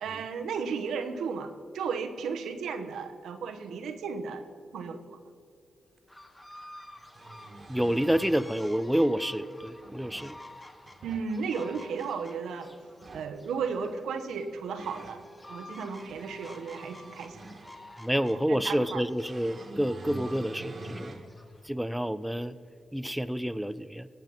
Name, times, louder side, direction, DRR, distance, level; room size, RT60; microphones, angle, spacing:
voice 1, 0.0-4.4 4.7-5.2 11.0-12.7 13.1-15.2 15.5-17.4 18.5-19.0, right 5 dB, 85° right, 8 dB, 0.9 m, -34 dB
sound 1, 6.0-6.1 6.9-8.6 9.6-10.4 10.8-11.3 12.9-13.3 14.3-15.2 15.8-18.0 19.2-21.3 21.8-21.9 23.4-23.5, right 2 dB, 55° right, 1.5 m, -46 dB
sound 2, 6.1-21.7, left 1 dB, 20° left, 1.7 m, -50 dB
voice 2, 7.7-10.4 18.0-21.2 21.6-22.6 22.9-24.1, equal, 5° right, 13 dB, 0.5 m, -28 dB
18.5 x 7.7 x 5.5 m, 2.3 s
supercardioid pair, 45°, 0 cm